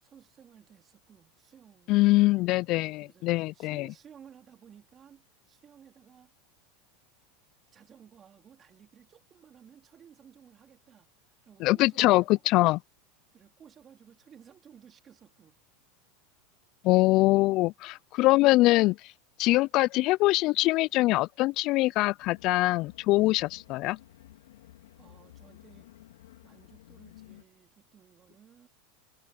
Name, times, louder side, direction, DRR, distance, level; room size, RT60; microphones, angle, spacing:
voice 1, 0.0-2.2 3.0-6.3 7.7-12.4 13.3-15.6 25.0-25.9 26.4-28.7, right 8 dB, 30° right, 3.6 m, -56 dB
voice 2, 1.9-3.9 11.6-12.8 16.8-19.0 19.4-24.0, left 19 dB, 50° left, 0.4 m, -23 dB
sound 1, 22.2-27.4, left 14 dB, 80° left, 3.1 m, -53 dB
hypercardioid pair, 105°, 0 cm